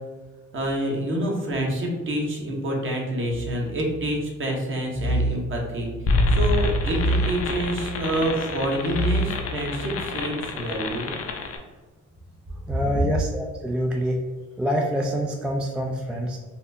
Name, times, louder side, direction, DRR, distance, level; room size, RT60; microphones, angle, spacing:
voice 1, 0.5-5.9 6.3-11.1 12.9-13.0, equal, 40° right, 0 dB, 1.0 m, -27 dB
sound 1, 3.3-4.3 4.9-6.2 6.9-8.2 8.9-10.0, right 1 dB, 65° left, 1.1 m, -29 dB
sound 2, 6.1-11.6, left 1 dB, 50° left, 0.6 m, -26 dB
voice 2, 12.7-14.2 14.6-16.4, equal, 5° right, 1 dB, 0.3 m, -26 dB
4.3 x 2.5 x 2.6 m, 1.3 s
cardioid pair, 90°, 30 cm